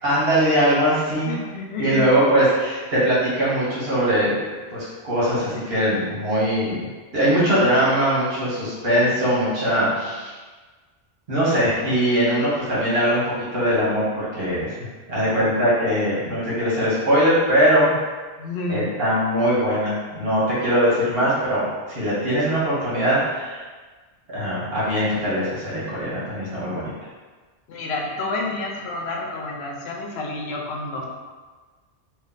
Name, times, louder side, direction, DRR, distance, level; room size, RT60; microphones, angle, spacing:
voice 1, 0.0-1.3 1.8-4.4 4.7-6.9 7.1-10.3 11.3-13.2 13.5-14.7 15.1-17.9 18.7-23.6 24.3-26.9, equal, 65° right, -9 dB, 1.5 m, -21 dB
voice 2, 1.3-2.1 15.2-15.5 18.4-18.9 27.7-31.0, left 2 dB, 80° left, 0 dB, 0.9 m, -29 dB
3.1 x 2.6 x 3.8 m, 1.4 s
omnidirectional pair, 1.1 m